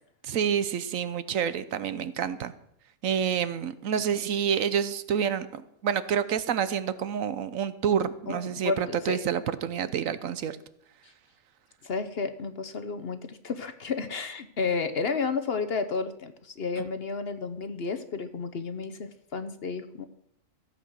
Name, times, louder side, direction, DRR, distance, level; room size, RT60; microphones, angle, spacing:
voice 1, 0.2-2.5 3.0-10.5 16.8-16.9, right 8 dB, 70° right, 14 dB, 1.1 m, -28 dB
voice 2, 8.3-9.2 11.0-11.1 11.8-20.1, left 4 dB, 50° left, 10 dB, 1.0 m, -32 dB
15.0 x 8.1 x 6.3 m, 0.74 s
omnidirectional pair, 1.5 m